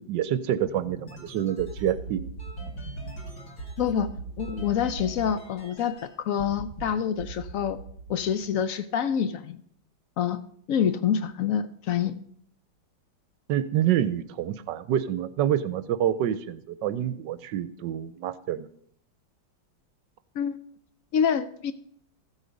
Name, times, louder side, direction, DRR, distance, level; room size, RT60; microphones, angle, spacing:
voice 1, 0.0-2.2 13.5-18.7, right 10 dB, 75° right, 13 dB, 1.2 m, -27 dB
sound 1, 0.7-6.1 6.4-6.8 7.2-8.6, right 3 dB, 55° left, 3.4 m, -39 dB
voice 2, 3.8-4.1 4.4-7.8 8.1-9.6 10.2-10.4 10.7-12.2 20.4-20.6 21.1-21.7, left 8 dB, 80° left, 13 dB, 0.7 m, -26 dB
15.0 x 8.1 x 5.1 m, 0.65 s
omnidirectional pair, 2.1 m